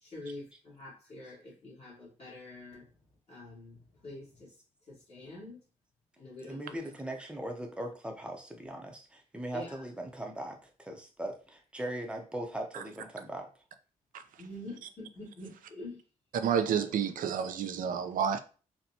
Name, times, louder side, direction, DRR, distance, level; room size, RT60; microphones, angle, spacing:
voice 1, 0.0-2.9 3.3-4.5 4.9-5.6 6.2-6.9 9.5-9.8 14.4-16.0 16.6-16.9 17.2-17.3, left 2 dB, 45° left, 1.8 m, -46 dB
voice 2, 6.4-13.5, right 1 dB, 5° right, 0.7 m, -39 dB
voice 3, 16.4-18.4, right 7 dB, 80° right, 0.4 m, -29 dB
4.0 x 2.2 x 2.8 m
cardioid pair, 110°, 14 cm